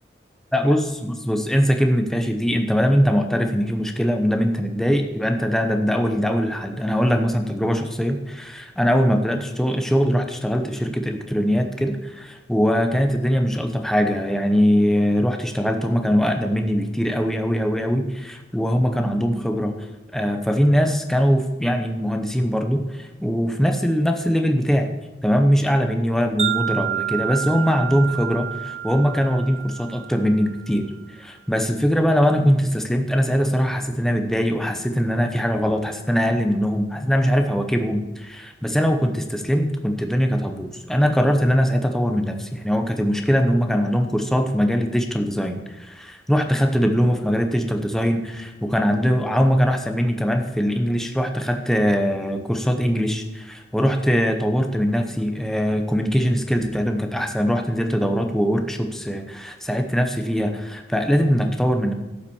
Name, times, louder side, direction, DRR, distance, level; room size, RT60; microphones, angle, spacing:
voice 1, 0.5-19.8 20.1-24.9 25.2-30.9 31.1-61.9, equal, ahead, 5 dB, 0.8 m, -21 dB
Wind chime, 26.4-30.7, right 10 dB, 35° right, 0.9 m, -29 dB
12.0 x 5.8 x 7.0 m, 1.0 s
head